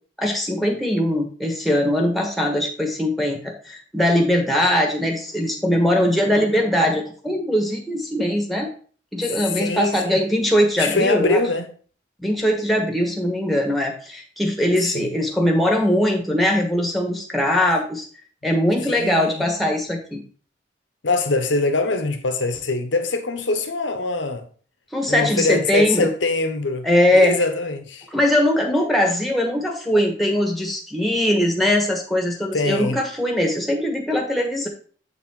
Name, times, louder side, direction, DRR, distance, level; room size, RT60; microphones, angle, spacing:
voice 1, 0.2-8.7 9.1-11.4 12.2-18.1 18.4-20.2 24.9-26.1 26.8-27.4 28.1-34.7, left 1 dB, ahead, 1.3 m, -21 dB
voice 2, 9.6-10.1 10.8-11.6 14.9-15.1 18.9-19.4 21.0-24.4 25.1-26.9 27.1-28.1 32.5-33.0, left 3 dB, 90° left, 1.1 m, -23 dB
8.0 x 4.2 x 4.4 m
head